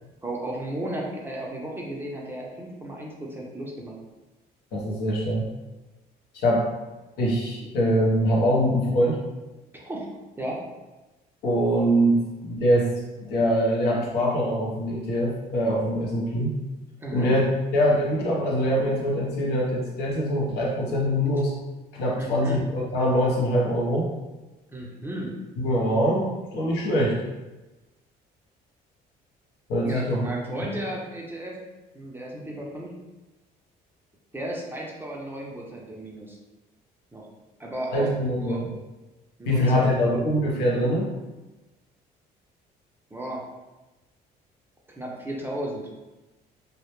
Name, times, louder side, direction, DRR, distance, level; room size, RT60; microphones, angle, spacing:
voice 1, 0.2-4.0 9.7-10.1 10.4-10.6 17.0-17.3 22.2-22.6 24.7-25.4 27.0-27.1 29.8-31.6 31.9-32.9 34.3-36.4 37.1-37.3 37.6-38.6 39.4-40.2 43.1-43.4 44.9-45.9, right 1 dB, 15° right, -2 dB, 0.4 m, -34 dB
voice 2, 4.7-5.5 6.3-6.7 7.2-9.2 11.4-12.9 13.3-16.5 17.1-17.4 17.7-21.5 21.9-24.1 25.6-27.1 29.7-30.3 37.9-38.7 39.4-41.1, equal, 80° left, -3 dB, 0.7 m, -23 dB
2.1 x 2.0 x 2.9 m, 1.1 s
cardioid pair, 110°, 17 cm